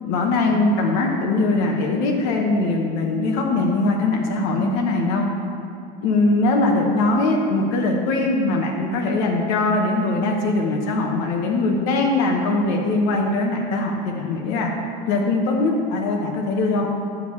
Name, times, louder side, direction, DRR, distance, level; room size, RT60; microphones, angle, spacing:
voice 1, 0.0-5.3 6.0-14.7 15.1-16.9, left 2 dB, 70° left, 1 dB, 1.0 m, -21 dB
11.5 x 7.2 x 3.2 m, 2.6 s
cardioid pair, 175°, 18 cm